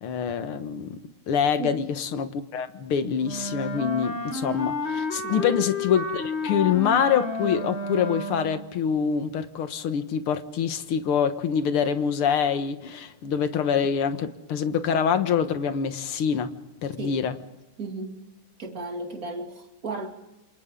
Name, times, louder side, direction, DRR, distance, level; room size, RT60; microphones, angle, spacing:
voice 1, 0.0-1.0 1.3-16.5 16.8-17.3, left 7 dB, 80° left, 2.2 m, -25 dB
Wind instrument woodwind instrument, 3.2-8.7, left 2 dB, 30° left, 2.2 m, -31 dB
voice 2, 5.2-5.6 17.0-17.2 17.8-18.2 18.6-20.1, right 3 dB, 40° right, 3.0 m, -35 dB
27.5 x 27.5 x 3.8 m
omnidirectional pair, 2.4 m